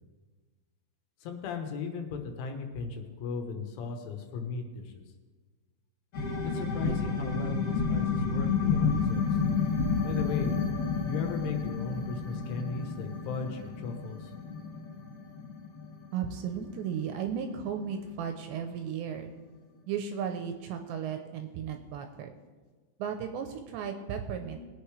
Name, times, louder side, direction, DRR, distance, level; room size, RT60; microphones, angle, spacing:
voice 1, 1.2-5.0 6.4-9.2 10.0-10.6 11.0-14.3, left 4 dB, 80° left, 4 dB, 3.6 m, -37 dB
sound 1, 6.1-17.5 17.8-17.9, left 5 dB, 50° left, 2.7 m, -30 dB
voice 2, 16.1-19.3 19.9-22.3 23.0-24.6, right 7 dB, 80° right, 5 dB, 2.7 m, -35 dB
21.5 x 8.3 x 3.3 m, 1.4 s
omnidirectional pair, 5.5 m